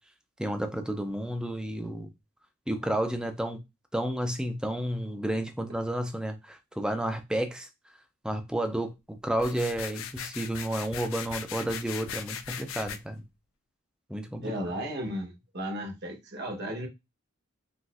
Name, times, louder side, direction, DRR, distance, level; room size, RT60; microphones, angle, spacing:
voice 1, 0.4-2.1 2.7-3.6 3.9-7.7 8.2-13.2 14.1-14.5, right 1 dB, 5° right, 0.4 m, -31 dB
sound 1, 9.4-13.0, left 8 dB, 80° left, 0.4 m, -39 dB
voice 2, 14.4-16.9, equal, 55° right, 1.0 m, -35 dB
3.9 x 2.5 x 2.4 m
head